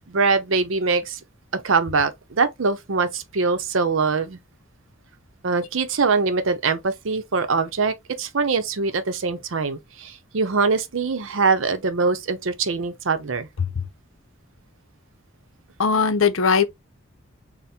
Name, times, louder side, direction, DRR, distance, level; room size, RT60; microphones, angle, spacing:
voice 1, 0.1-1.2 1.5-4.4 5.4-13.5, right 4 dB, 75° right, 0.7 m, -23 dB
voice 2, 15.8-16.6, left 5 dB, 80° left, 0.6 m, -20 dB
4.2 x 2.1 x 3.4 m
head